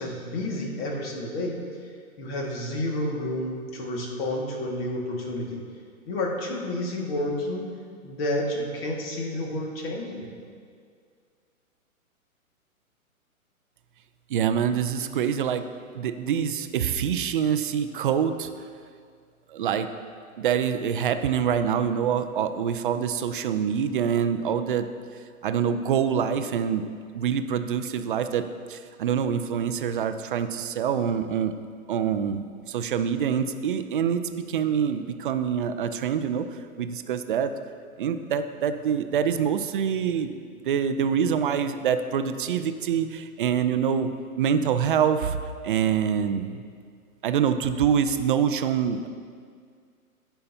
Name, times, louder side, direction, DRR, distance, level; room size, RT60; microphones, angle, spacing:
voice 1, 0.0-1.6 2.2-5.6 6.1-7.7 8.0-10.3, left 1 dB, 45° left, 0 dB, 1.9 m, -30 dB
voice 2, 14.3-15.6 15.9-18.5 19.5-19.9 20.4-24.9 25.4-26.8 27.1-28.4 28.7-31.5 31.9-36.4 36.8-37.5 38.0-40.3 40.6-44.1 44.4-45.4 45.6-46.6 47.2-49.1, right 8 dB, 40° right, 10 dB, 0.4 m, -25 dB
16.0 x 5.7 x 2.8 m, 2.1 s
hypercardioid pair, 130°, 43 cm